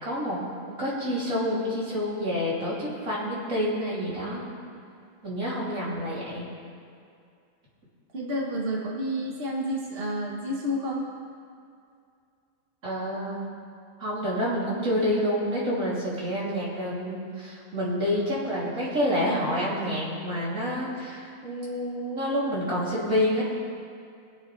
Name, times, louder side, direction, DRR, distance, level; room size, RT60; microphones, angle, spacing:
voice 1, 0.0-4.5 5.2-6.5 12.8-13.5 14.0-23.4, equal, 90° right, -7 dB, 3.5 m, -28 dB
voice 2, 8.1-11.1, equal, 50° right, -3 dB, 1.5 m, -30 dB
22.5 x 8.1 x 3.3 m, 2.4 s
omnidirectional pair, 1.3 m